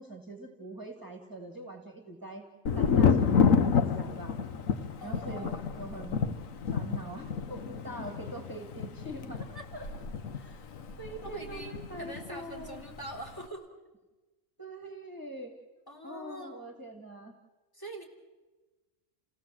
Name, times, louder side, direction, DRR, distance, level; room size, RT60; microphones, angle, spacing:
voice 1, 0.0-2.4 2.8-4.4 5.0-6.2 6.7-9.4 9.7-9.9 10.3-10.7 11.0-12.8 14.6-15.5 16.0-17.3, right 2 dB, 15° right, 4 dB, 2.1 m, -43 dB
Thunder, 2.7-12.3 12.6-13.3, left 6 dB, 80° left, 1.4 m, -29 dB
voice 2, 4.8-6.4 9.5-9.7 11.2-13.7 15.9-16.8 17.7-18.0, right 1 dB, 15° left, 3 dB, 3.8 m, -45 dB
30.0 x 17.0 x 7.7 m, 1.2 s
omnidirectional pair, 1.4 m